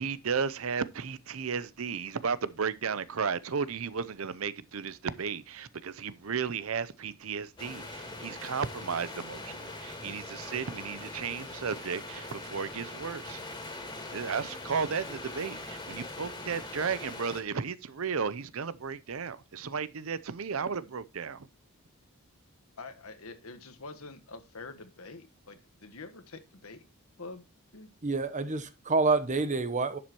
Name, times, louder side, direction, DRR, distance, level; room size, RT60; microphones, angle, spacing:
voice 1, 0.0-13.4 14.1-21.5, right 6 dB, 65° right, 0.7 m, -34 dB
sound 1, 7.6-17.4, left 2 dB, 20° left, 2.7 m, -42 dB
voice 2, 22.8-26.8 27.2-27.5 27.7-27.9, left 3 dB, 75° left, 1.4 m, -46 dB
voice 3, 28.0-30.0, right 3 dB, 35° right, 0.9 m, -27 dB
11.0 x 7.5 x 3.0 m
head